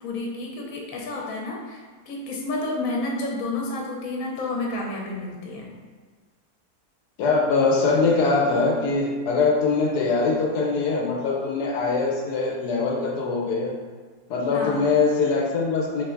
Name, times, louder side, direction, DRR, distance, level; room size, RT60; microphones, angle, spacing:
voice 1, 0.0-5.7 14.5-14.8, left 2 dB, 65° left, -1 dB, 1.2 m, -30 dB
voice 2, 7.2-13.7 14.3-16.0, left 4 dB, 80° left, -1 dB, 1.1 m, -22 dB
3.5 x 3.3 x 3.8 m, 1.5 s
omnidirectional pair, 1.7 m